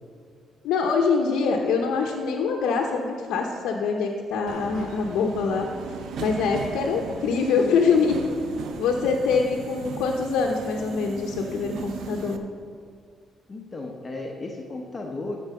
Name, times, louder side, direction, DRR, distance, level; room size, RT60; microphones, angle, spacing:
voice 1, 0.6-5.7 6.2-8.2 8.8-12.4, left 5 dB, 85° left, -1 dB, 0.9 m, -24 dB
Subway metro underground, 4.5-12.4, right 5 dB, 75° right, 0.7 m, -37 dB
voice 2, 13.5-15.4, left 2 dB, 30° left, 1 dB, 1.1 m, -34 dB
14.0 x 4.7 x 6.6 m, 2.2 s
cardioid pair, 90°, 0 cm